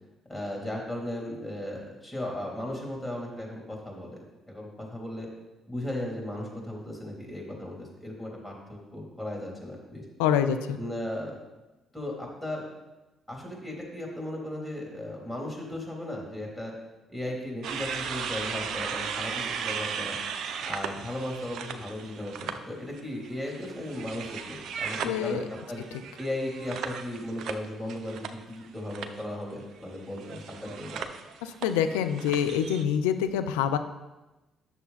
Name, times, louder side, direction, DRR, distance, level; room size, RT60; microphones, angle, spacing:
voice 1, 0.3-4.2 4.5-5.3 5.7-10.0 10.8-11.4 11.9-12.6 13.3-16.7 17.1-20.2 20.7-25.4 25.7-25.8 26.2-31.1, left 1 dB, 10° left, -2 dB, 3.5 m, -36 dB
voice 2, 10.2-10.8 25.0-25.4 31.4-33.8, left 8 dB, 85° left, 8 dB, 0.5 m, -26 dB
sound 1, 17.6-22.6 22.9-28.6 28.9-29.2 30.1-32.8, right 7 dB, 65° right, 0.7 m, -36 dB
10.0 x 6.8 x 4.1 m, 1.1 s
hypercardioid pair, 50°, 0 cm